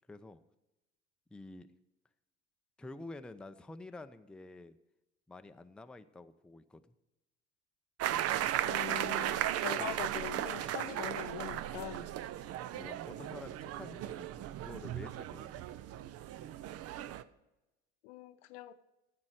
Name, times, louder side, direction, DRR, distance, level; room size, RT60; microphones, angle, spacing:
voice 1, 0.1-0.4 1.3-1.7 2.8-4.8 5.3-6.9 9.7-9.9 12.7-15.6, left 2 dB, 5° left, 0.6 m, -49 dB
sound 1, 8.0-17.2, right 12 dB, 45° right, 0.6 m, -36 dB
voice 2, 8.6-12.1 18.0-18.7, left 14 dB, 65° left, 0.8 m, -43 dB
14.5 x 7.8 x 4.9 m
figure-of-eight pair, 55°, 35 cm